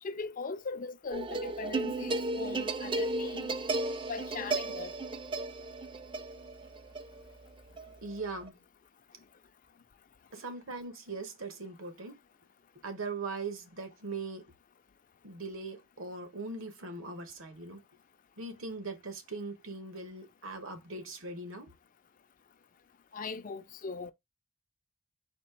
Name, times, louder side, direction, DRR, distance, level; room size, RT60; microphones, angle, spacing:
voice 1, 0.0-3.5 4.1-4.9 23.1-24.1, left 4 dB, 40° left, 0.4 m, -39 dB
sound 1, 1.1-8.5, right 2 dB, 25° right, 0.4 m, -35 dB
voice 2, 8.0-8.6 10.3-12.2 12.8-14.5 15.2-17.8 18.4-21.7, right 3 dB, 75° right, 1.3 m, -40 dB
4.3 x 2.8 x 4.3 m
head